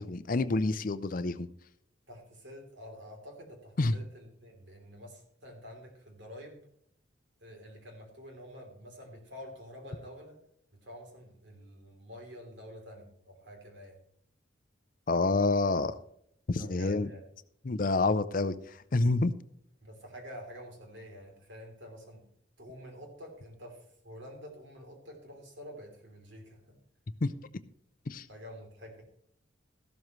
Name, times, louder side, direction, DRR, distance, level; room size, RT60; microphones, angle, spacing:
voice 1, 0.0-1.5 3.8-3.9 15.1-15.9 16.5-17.1 17.6-19.3 27.2-27.3 28.1-28.3, left 3 dB, 40° left, 13 dB, 0.5 m, -28 dB
voice 2, 2.1-6.7 7.4-10.4 10.8-14.0 16.5-17.2 19.8-22.2 22.6-26.8 28.3-29.0, equal, 65° right, 2 dB, 3.3 m, -48 dB
14.0 x 12.5 x 3.2 m, 0.70 s
head